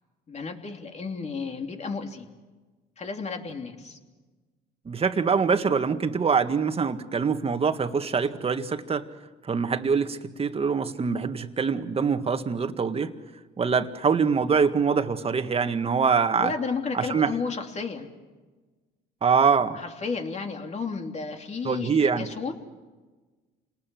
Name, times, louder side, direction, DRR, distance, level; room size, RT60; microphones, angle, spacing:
voice 1, 0.3-2.2 3.0-4.0 16.4-18.1 19.7-22.5, left 4 dB, 40° left, 4 dB, 3.2 m, -32 dB
voice 2, 4.9-9.0 9.5-13.1 13.6-16.5 16.9-17.3 19.2-19.8 21.6-22.3, right 5 dB, 35° right, 8 dB, 1.8 m, -24 dB
28.5 x 19.5 x 7.8 m, 1.3 s
cardioid pair, 85°, 18 cm